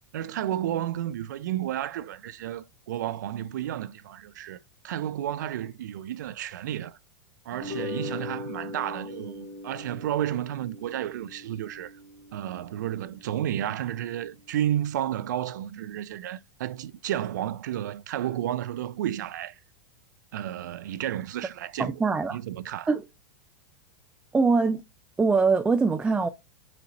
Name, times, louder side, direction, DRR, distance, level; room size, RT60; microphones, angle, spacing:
voice 1, 0.1-4.6 4.8-7.0 7.5-11.9 12.3-19.6 20.3-22.0 22.3-22.9, right 11 dB, 80° right, 0.4 m, -32 dB
sound 1, 7.5-14.0, left 3 dB, 40° left, 1.5 m, -40 dB
voice 2, 21.8-22.4 22.9-23.0 24.3-24.8 25.2-26.3, right 4 dB, 10° right, 0.3 m, -23 dB
4.3 x 4.0 x 2.5 m
hypercardioid pair, 120°, 10 cm